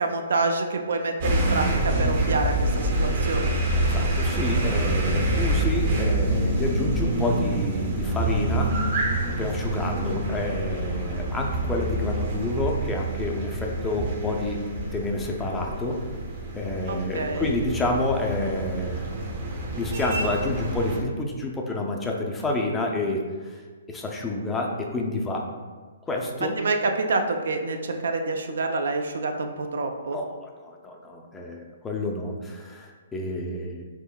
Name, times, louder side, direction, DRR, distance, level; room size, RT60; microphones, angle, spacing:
voice 1, 0.0-3.5 16.9-17.5 26.6-30.2, right 3 dB, 75° right, 5 dB, 0.4 m, -27 dB
sound 1, 1.2-21.0, right 1 dB, 50° right, 0.8 m, -27 dB
voice 2, 3.9-8.7 9.4-16.1 16.5-19.0 19.8-23.6 23.9-25.5 26.1-26.6 30.1-33.9, left 2 dB, 10° left, 0 dB, 0.4 m, -29 dB
4.2 x 3.6 x 2.2 m, 1.4 s
hypercardioid pair, 145°, 0 cm